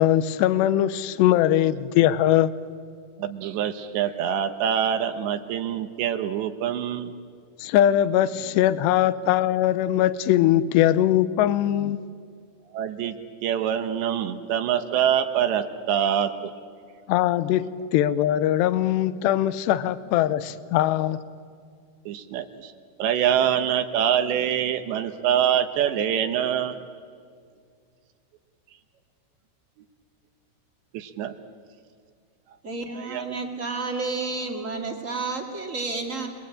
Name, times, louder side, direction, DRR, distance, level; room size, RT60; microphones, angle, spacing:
voice 1, 0.0-2.5 7.6-12.0 17.1-21.2, left 12 dB, 75° left, 2.7 m, -21 dB
voice 2, 3.2-7.1 12.7-13.2 13.4-16.5 22.1-22.7 23.0-26.8 30.9-31.3 32.9-33.4, right 9 dB, 75° right, 3.1 m, -25 dB
voice 3, 32.6-36.3, right 3 dB, 30° right, 1.5 m, -31 dB
30.0 x 22.0 x 8.8 m
omnidirectional pair, 5.5 m